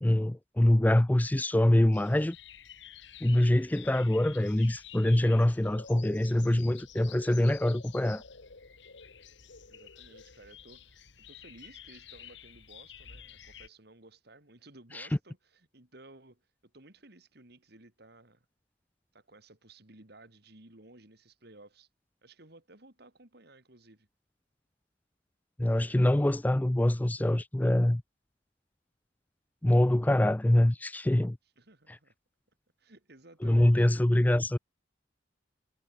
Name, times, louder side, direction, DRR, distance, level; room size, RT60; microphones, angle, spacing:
voice 1, 0.0-2.4 3.2-8.2 14.9-15.1 25.6-28.0 29.6-31.4 33.4-34.6, left 1 dB, 10° left, 0.4 m, -24 dB
sound 1, 1.9-13.7, left 8 dB, 70° left, 1.6 m, -51 dB
voice 2, 9.7-18.5 19.1-21.9 22.2-24.1 31.6-32.1 32.8-33.9, right 2 dB, 60° right, 3.2 m, -56 dB
head